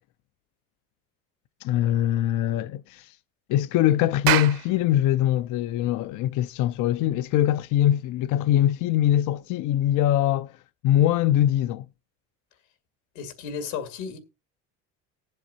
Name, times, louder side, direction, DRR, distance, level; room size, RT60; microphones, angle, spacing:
voice 1, 1.6-3.2 3.5-10.5 10.8-11.9, left 12 dB, 55° left, 0.5 m, -22 dB
Clapping, 4.0-8.9, right 13 dB, 70° right, 1.4 m, -31 dB
voice 2, 13.2-14.2, left 6 dB, 85° left, 2.3 m, -33 dB
19.0 x 7.6 x 2.7 m
supercardioid pair, 95°, 36 cm